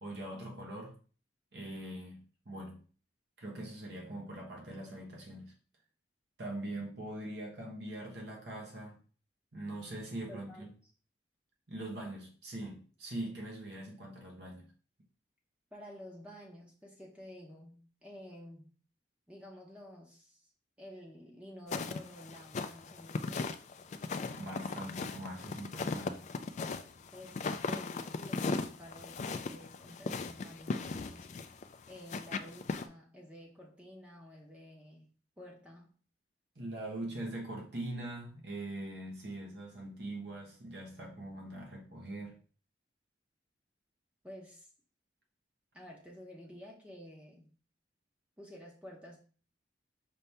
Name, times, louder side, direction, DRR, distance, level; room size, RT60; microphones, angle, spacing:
voice 1, 0.0-0.9 1.5-2.8 3.4-5.5 6.4-9.0 9.5-10.7 11.7-14.7 24.3-26.3 36.5-42.4, right 1 dB, 60° right, -1 dB, 1.2 m, -42 dB
voice 2, 10.3-10.6 15.7-18.7 19.3-20.5 20.8-23.6 27.1-31.3 31.9-35.1 35.4-35.9 44.2-44.7 45.7-47.5 48.4-49.2, left 1 dB, 5° right, -2 dB, 0.8 m, -51 dB
sound 1, 21.7-32.8, left 4 dB, 40° left, 0.3 m, -37 dB
5.3 x 2.8 x 3.3 m, 0.40 s
head